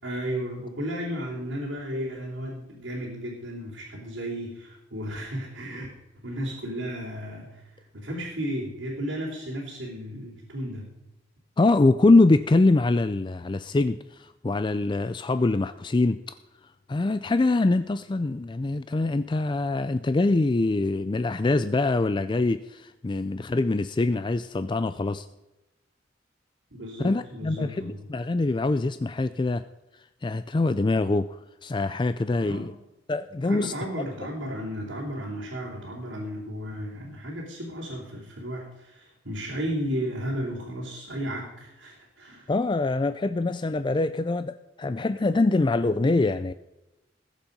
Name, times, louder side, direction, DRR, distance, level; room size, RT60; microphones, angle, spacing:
voice 1, 0.0-5.9 6.1-10.9 26.7-28.1 32.4-32.7 33.4-42.5, equal, 70° right, -4 dB, 3.4 m, -34 dB
voice 2, 11.6-16.2 16.9-25.3 27.0-29.6 30.2-31.3 31.6-32.7 33.1-33.7 42.5-46.5, left 2 dB, 25° left, 12 dB, 0.4 m, -24 dB
20.0 x 7.3 x 5.3 m, 0.98 s
head